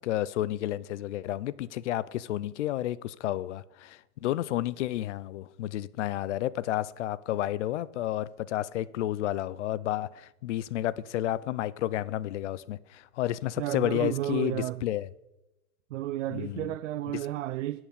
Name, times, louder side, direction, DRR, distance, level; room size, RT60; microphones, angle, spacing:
voice 1, 0.0-15.1 16.3-16.7, left 13 dB, 55° left, 0.6 m, -31 dB
voice 2, 13.6-14.8 15.9-17.8, right 14 dB, 60° right, 0.5 m, -32 dB
10.5 x 6.0 x 7.2 m
supercardioid pair, 160°, 42 cm